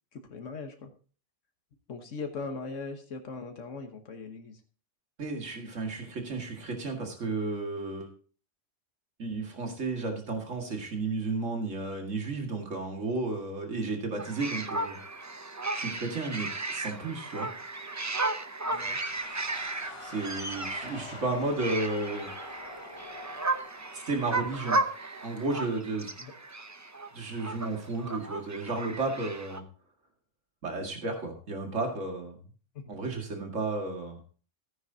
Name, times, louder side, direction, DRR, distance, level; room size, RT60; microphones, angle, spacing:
voice 1, 0.1-0.9 1.9-4.6 18.7-19.0 26.2-26.3 32.7-32.9, left 4 dB, 80° left, 5 dB, 1.5 m, -40 dB
voice 2, 5.2-8.1 9.2-15.0 15.7-17.5 20.0-22.3 23.9-24.8 25.2-26.1 27.1-29.6 30.6-32.4 32.9-34.2, right 3 dB, 80° right, 2 dB, 2.4 m, -33 dB
sound 1, 14.2-29.6, right 2 dB, 20° right, 0.4 m, -35 dB
sound 2, 18.7-24.5, left 3 dB, 30° left, 0.8 m, -46 dB
14.5 x 9.5 x 2.8 m, 0.38 s
omnidirectional pair, 1.3 m